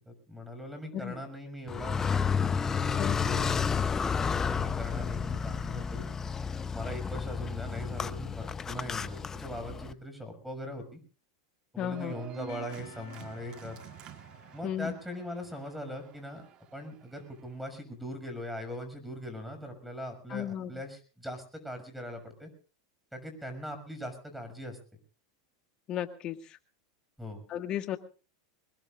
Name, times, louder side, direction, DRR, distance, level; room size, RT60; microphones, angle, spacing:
voice 1, 0.0-2.0 2.6-6.1 6.7-11.0 11.7-13.8 14.5-16.5 16.7-22.5 23.1-24.8 27.2-27.4, equal, ahead, 7 dB, 6.2 m, -40 dB
Car, 1.7-9.9, left 6 dB, 20° left, 0.8 m, -31 dB
voice 2, 11.8-12.1 14.6-14.9 20.3-20.7 25.9-26.6 27.5-28.0, left 11 dB, 40° left, 8 dB, 1.8 m, -34 dB
Organ, 11.9-17.5, right 13 dB, 45° right, 1.6 m, -49 dB
Percussion, 12.5-16.4, left 7 dB, 75° left, 2.9 m, -56 dB
24.5 x 21.0 x 2.5 m, 0.37 s
hypercardioid pair, 105°, 2 cm